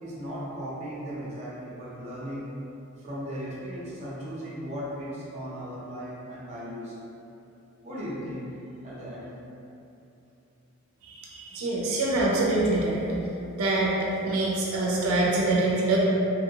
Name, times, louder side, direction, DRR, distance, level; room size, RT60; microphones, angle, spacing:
voice 1, 0.0-2.6 3.0-7.0 7.8-9.4 11.3-11.4 11.8-12.0, equal, 30° right, -7 dB, 0.6 m, -37 dB
voice 2, 11.1-13.1 13.5-16.0, right 2 dB, 75° right, -4 dB, 0.4 m, -25 dB
2.9 x 2.7 x 2.7 m, 2.8 s
head